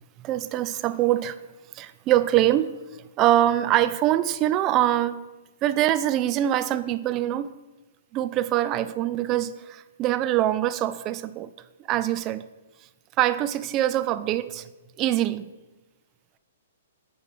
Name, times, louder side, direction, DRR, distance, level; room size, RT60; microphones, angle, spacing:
voice 1, 0.2-1.4 1.7-2.8 3.2-5.2 5.6-7.5 8.1-11.5 11.9-12.4 13.2-14.7 15.0-15.5, right 13 dB, 30° right, 0.4 m, -24 dB
9.2 x 5.0 x 4.8 m
figure-of-eight pair, 115°, 0 cm